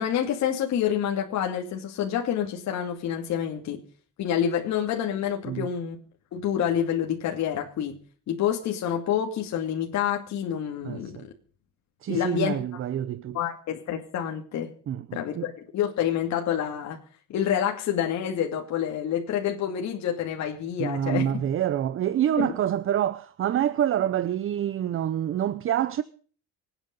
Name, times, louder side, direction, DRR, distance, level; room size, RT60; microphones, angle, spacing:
voice 1, 0.0-3.8 4.2-6.0 6.3-8.0 8.3-11.2 12.1-12.6 13.3-14.7 15.1-17.0 17.3-21.4 22.4-22.5, left 9 dB, 55° left, 2.6 m, -28 dB
voice 2, 10.8-11.3 12.0-13.4 14.9-15.5 20.8-26.0, right 10 dB, 40° right, 0.8 m, -27 dB
24.5 x 9.2 x 5.3 m
cardioid pair, 140°, 32 cm